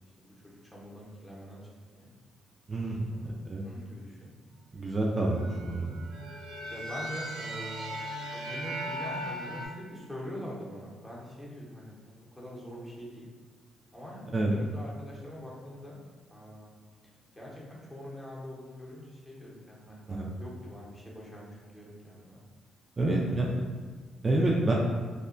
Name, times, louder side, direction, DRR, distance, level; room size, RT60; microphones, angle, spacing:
voice 1, 0.2-1.6 1.9-2.1 3.1-4.3 6.7-7.9 8.3-13.3 13.9-16.0 16.3-16.7 17.4-22.4 23.3-23.5, left 1 dB, 10° left, -5 dB, 0.7 m, -44 dB
voice 2, 2.7-3.1 3.5-3.6 4.7-6.0 14.3-14.5 20.1-20.3 23.0-23.6 24.2-24.7, right 2 dB, 30° right, -2 dB, 0.3 m, -28 dB
sound 1, 5.3-9.7, right 1 dB, 80° right, 0.6 m, -38 dB
2.8 x 2.1 x 2.5 m, 1.5 s
cardioid pair, 90°, 0 cm